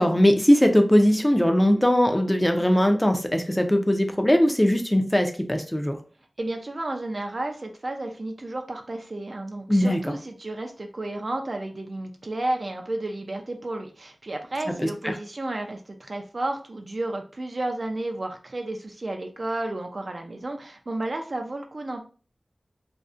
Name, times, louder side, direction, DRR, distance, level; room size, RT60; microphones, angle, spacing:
voice 1, 0.0-6.0 9.7-10.0 15.0-15.1, equal, 15° left, 5 dB, 0.4 m, -20 dB
voice 2, 6.4-22.0, right 2 dB, 55° right, 4 dB, 0.3 m, -32 dB
2.5 x 2.0 x 2.3 m, 0.38 s
wide cardioid pair, 60°, 0 cm